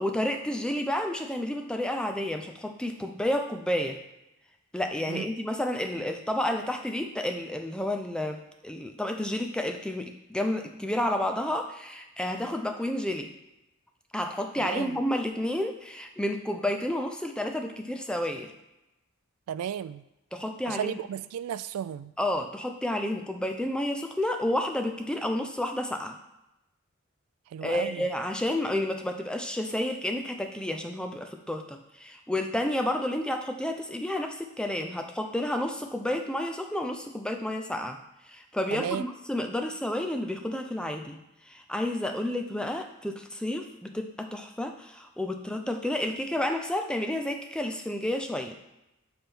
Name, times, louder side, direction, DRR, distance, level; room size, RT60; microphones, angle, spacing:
voice 1, 0.0-4.0 4.7-13.3 14.1-18.5 20.3-20.9 22.2-26.2 27.6-38.0 38.3-41.2 41.5-48.6, left 1 dB, 5° left, 5 dB, 0.4 m, -30 dB
voice 2, 14.6-15.0 19.5-20.0 20.7-22.1 27.5-28.1 38.7-39.0, right 9 dB, 90° right, 16 dB, 0.3 m, -34 dB
7.1 x 3.4 x 4.4 m, 0.92 s
head